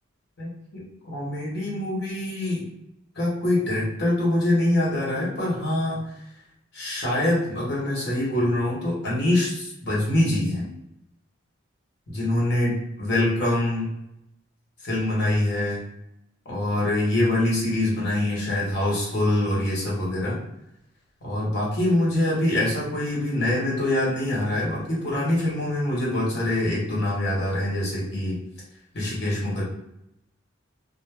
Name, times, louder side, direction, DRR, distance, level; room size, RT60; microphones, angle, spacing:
voice 1, 0.4-2.6 3.1-6.1 6.7-10.7 12.1-13.9 14.8-15.8 16.4-20.4 21.2-28.4 28.9-29.6, left 1 dB, 55° left, -5 dB, 1.1 m, -24 dB
2.3 x 2.1 x 3.3 m, 0.82 s
head